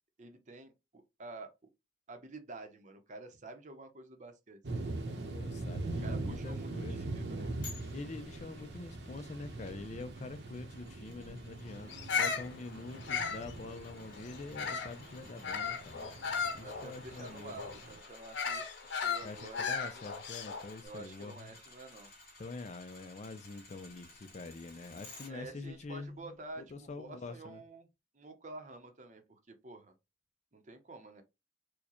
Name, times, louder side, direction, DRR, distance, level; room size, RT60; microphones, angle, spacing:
voice 1, 0.2-1.5 2.1-5.3 6.0-7.5 11.8-12.3 15.9-20.1 20.8-22.1 25.3-27.9 28.1-29.9 30.5-31.2, right 2 dB, 40° right, 0.7 m, -50 dB
sound 1, 4.6-18.0, right 2 dB, 70° right, 0.8 m, -42 dB
voice 2, 5.2-7.1 7.9-16.0 16.5-17.6 19.2-21.5 22.4-27.6, left 3 dB, 40° left, 0.4 m, -45 dB
sound 2, 7.6-25.3 25.7-25.8, left 3 dB, 55° left, 2.0 m, -56 dB
Bird vocalization bird call bird song, 11.9-15.0 15.4-20.7, left 6 dB, 85° left, 0.7 m, -36 dB
4.6 x 2.2 x 2.9 m
head